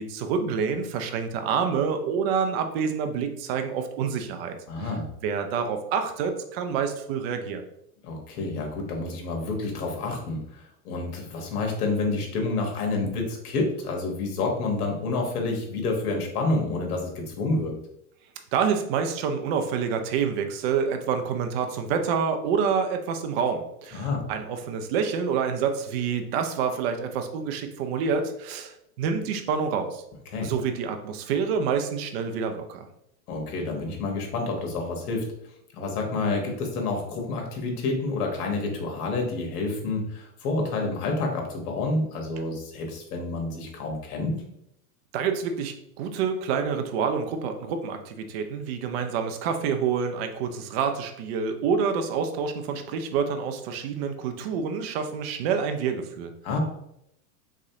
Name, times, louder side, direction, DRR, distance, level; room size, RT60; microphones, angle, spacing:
voice 1, 0.0-4.9 5.2-7.6 13.0-13.2 18.5-30.0 30.4-32.9 45.1-56.3, right 6 dB, 45° right, 6 dB, 0.5 m, -27 dB
voice 2, 4.7-5.0 8.0-17.7 23.9-24.2 30.3-30.5 33.3-35.2 35.7-44.4 56.4-56.6, left 3 dB, 80° left, 1 dB, 1.2 m, -29 dB
3.6 x 3.2 x 2.7 m, 0.78 s
supercardioid pair, 140°, 45 cm